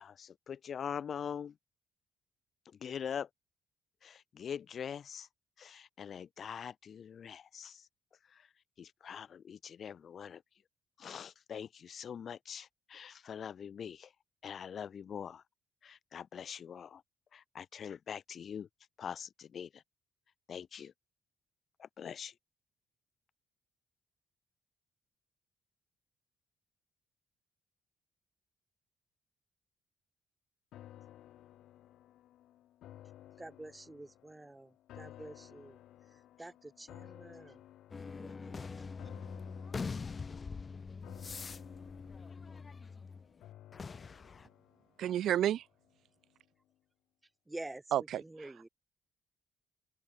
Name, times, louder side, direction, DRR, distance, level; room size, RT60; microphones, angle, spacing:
voice 1, 0.0-1.5 2.8-3.3 4.0-5.3 5.6-7.9 8.3-8.4 8.8-10.4 11.0-14.1 14.4-15.4 15.8-17.0 17.3-18.7 19.0-19.8 20.5-20.9 21.8-22.3, left 8 dB, 55° left, 0.4 m, -43 dB
sound 1, 30.7-46.0 46.4-46.5, left 13 dB, 80° left, 2.3 m, -56 dB
voice 2, 33.4-34.7 35.0-35.7 36.4-36.5 36.8-37.6 38.2-38.9 47.5-47.8 48.4-48.7, right 2 dB, 15° right, 0.7 m, -48 dB
sound 2, 37.9-43.3 43.7-44.5, left 5 dB, 35° left, 0.8 m, -43 dB
voice 3, 45.0-45.6 47.9-48.5, right 11 dB, 75° right, 0.3 m, -31 dB
cardioid pair, 90°, 0 cm